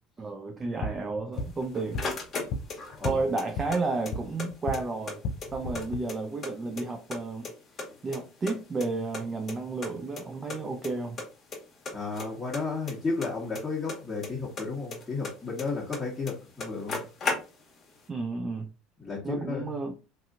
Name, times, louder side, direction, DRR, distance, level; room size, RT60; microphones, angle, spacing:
voice 1, 0.2-2.0 2.7-5.2 5.5-7.5 8.0-11.2 18.1-18.7 19.2-20.0, right 3 dB, 25° right, 0.5 m, -32 dB
sound 1, 0.6-4.8 5.1-6.0, left 3 dB, 65° left, 0.4 m, -36 dB
sound 2, 1.4-3.1 3.4-4.5 4.7-4.8 5.1-6.5 6.8-7.5 7.8-9.2 9.5-9.6 9.8-9.9 10.2-10.3 10.5-10.9 11.2-11.6 11.9-14.3 14.6-16.0 16.3-16.4 16.6-17.8, left 3 dB, 35° left, 1.1 m, -35 dB
voice 2, 11.9-17.0 19.0-19.8, left 4 dB, 15° left, 1.2 m, -33 dB
2.7 x 2.6 x 2.5 m
supercardioid pair, 95°, 0 cm